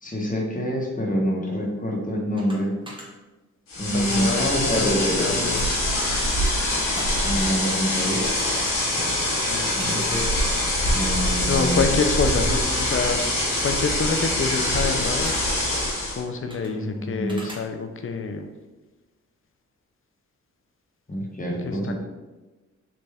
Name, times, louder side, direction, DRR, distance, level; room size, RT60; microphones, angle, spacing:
voice 1, 0.0-2.7 3.8-5.6 7.2-8.3 8.9-9.1 9.8-10.3 10.9-11.9 16.7-17.4 21.1-21.9, equal, 25° left, -2 dB, 1.1 m, -26 dB
sound 1, 2.4-2.6 2.9-3.1 5.5-5.8 6.2-6.5 6.9-7.2 8.2-8.7 9.8-10.2 11.6-11.9 12.3-12.5 13.2-13.4 14.3-14.5 15.1-15.5 16.5-16.7 17.3-17.6, right 1 dB, 15° right, 1.1 m, -40 dB
sound 2, 3.7-16.2, left 1 dB, 90° left, 0.9 m, -24 dB
voice 2, 3.9-5.7 9.5-10.0 11.5-13.2 13.6-15.3 16.2-18.5 21.6-21.9, left 4 dB, 40° left, 6 dB, 0.5 m, -27 dB
3.4 x 2.5 x 3.4 m, 1.2 s
cardioid pair, 40°, 32 cm